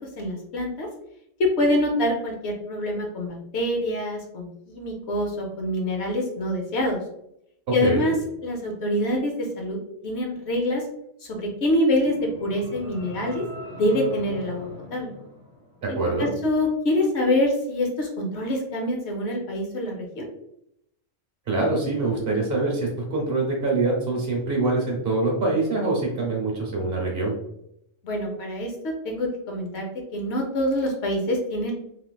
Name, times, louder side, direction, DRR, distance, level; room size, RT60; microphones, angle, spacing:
voice 1, 0.2-0.9 1.4-7.0 7.7-8.1 8.4-9.8 10.0-10.8 11.3-13.4 13.7-15.1 15.9-20.3 28.0-29.8 30.1-31.7, left 1 dB, 65° left, 1 dB, 0.9 m, -25 dB
sound 1, 11.9-16.1, left 1 dB, 25° left, 0.6 m, -41 dB
voice 2, 15.8-16.3 21.5-27.3, right 3 dB, 55° right, -1 dB, 1.0 m, -24 dB
3.1 x 2.8 x 2.2 m, 0.77 s
omnidirectional pair, 1.3 m